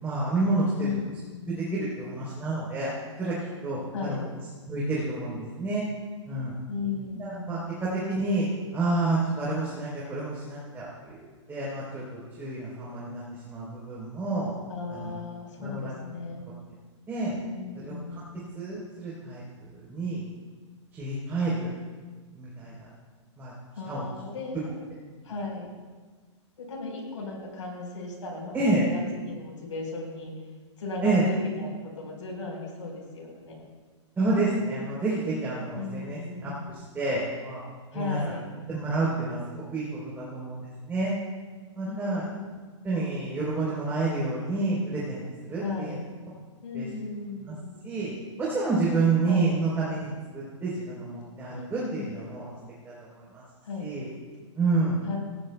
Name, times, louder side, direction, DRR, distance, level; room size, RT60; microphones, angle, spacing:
voice 1, 0.0-0.9 1.6-2.9 3.2-3.3 3.6-4.2 4.7-5.8 6.3-6.5 7.2-8.5 8.7-11.2 11.5-12.0 12.4-14.5 14.9-15.1 15.6-15.9 17.1-17.3 17.9-18.0 18.6-19.4 19.9-20.2 20.9-21.7 22.3-22.7 23.4-23.5 23.9-24.1 28.5-28.8 31.0-31.2 34.2-37.6 37.9-38.2 38.7-40.6 40.9-41.1 41.8-42.2 42.8-45.2 45.5-45.9 46.7-46.9 47.8-48.1 48.4-52.5 53.3-53.4 53.8-54.1 54.6-55.0, right 3 dB, 15° right, -7 dB, 3.6 m, -29 dB
voice 2, 0.7-1.7 3.9-4.3 6.7-7.7 14.7-16.5 17.3-18.4 23.7-24.7 25.2-25.7 26.6-30.3 30.8-33.6 35.7-36.8 37.9-38.5 41.8-42.5 45.6-46.1 46.6-47.8 49.2-49.6 51.5-52.2 53.6-54.0 55.0-55.2, left 3 dB, 85° left, 1 dB, 4.3 m, -36 dB
17.0 x 16.5 x 2.3 m, 1.4 s
hypercardioid pair, 135°, 16 cm